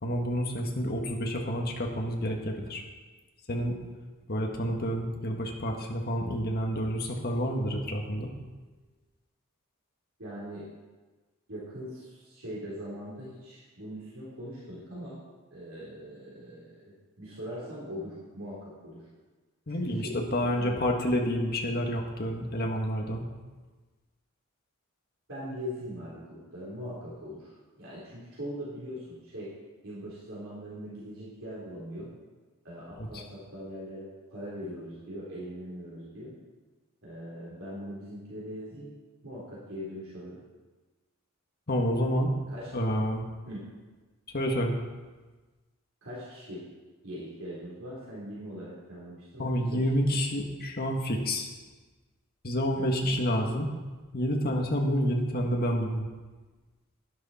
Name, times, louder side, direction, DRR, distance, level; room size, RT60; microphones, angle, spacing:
voice 1, 0.0-2.8 3.5-3.8 4.3-8.3 19.7-23.2 33.0-33.2 41.7-42.4 42.7-43.2 44.3-44.8 49.4-51.5 52.4-53.7 54.1-56.1, equal, 45° left, 2 dB, 1.6 m, -29 dB
voice 2, 10.2-10.7 11.5-15.2 15.5-19.1 20.0-20.2 20.6-20.8 25.3-29.5 29.8-32.1 32.6-36.3 37.0-38.9 39.2-40.4 42.5-42.7 43.5-43.6 46.0-46.6 47.0-50.2 52.8-53.2, equal, 70° right, -8 dB, 3.8 m, -41 dB
11.5 x 11.0 x 4.3 m, 1.3 s
head